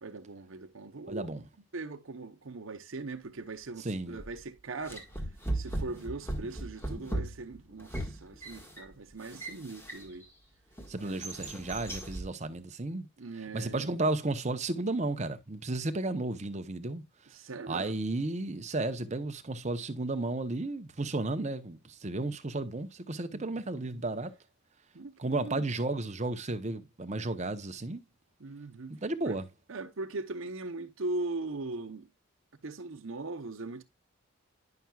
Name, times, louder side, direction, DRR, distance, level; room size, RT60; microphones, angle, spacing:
voice 1, 0.0-1.3 1.7-5.1 5.5-10.3 11.0-11.2 13.2-13.9 17.3-18.0 23.3-24.0 24.9-25.7 28.4-29.0 29.2-29.4 29.7-32.1 32.6-33.8, right 3 dB, 65° right, 0.8 m, -40 dB
voice 2, 1.1-1.4 3.8-4.2 10.9-13.1 13.5-17.0 17.7-24.3 25.2-28.0 28.9-29.4, right 2 dB, 30° right, 0.8 m, -33 dB
sound 1, 4.2-4.4 4.8-10.3 10.8-12.3, right 1 dB, 10° left, 1.6 m, -38 dB
10.5 x 5.8 x 2.3 m
head